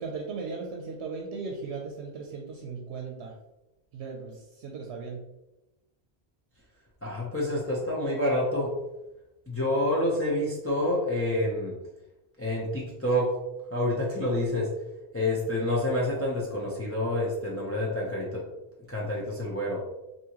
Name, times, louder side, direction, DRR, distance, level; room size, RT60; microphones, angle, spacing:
voice 1, 0.0-3.3 3.9-5.2, right 4 dB, 85° right, 1 dB, 0.9 m, -37 dB
voice 2, 7.0-8.7 9.5-11.7 12.4-13.3 13.7-14.7 15.1-18.4 18.9-19.8, left 1 dB, 15° left, -5 dB, 0.5 m, -28 dB
3.6 x 2.7 x 2.9 m, 0.96 s
omnidirectional pair, 1.1 m